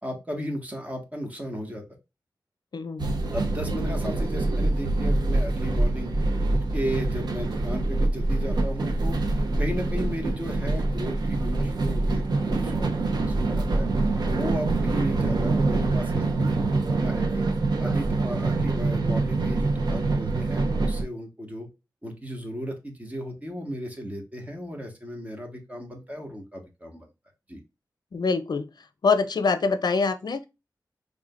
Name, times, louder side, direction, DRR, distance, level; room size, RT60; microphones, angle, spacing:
voice 1, 0.0-1.8 3.3-6.1 6.7-9.2 9.6-13.9 14.2-17.5 17.8-21.7 22.0-27.1 27.5-27.6, equal, 20° right, 1.6 m, -35 dB
voice 2, 2.7-3.2 3.7-3.9 28.1-28.7 29.0-30.5, left 4 dB, 70° left, 0.5 m, -25 dB
sound 1, 3.0-21.0, right 2 dB, 75° right, 1.0 m, -25 dB
5.0 x 3.4 x 2.4 m
wide cardioid pair, 95°, 7 cm